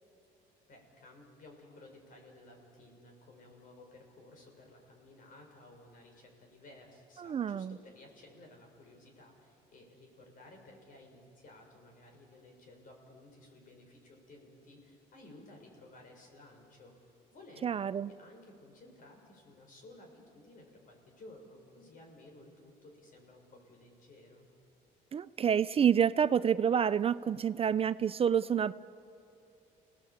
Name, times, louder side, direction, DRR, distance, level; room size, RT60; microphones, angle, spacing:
voice 1, 0.7-17.7 18.0-24.5, left 2 dB, 55° left, 2 dB, 6.4 m, -56 dB
voice 2, 7.2-7.7 17.6-18.1 25.1-28.7, right 8 dB, 35° right, 15 dB, 0.5 m, -28 dB
29.5 x 18.5 x 8.7 m, 2.6 s
cardioid pair, 110°, 17 cm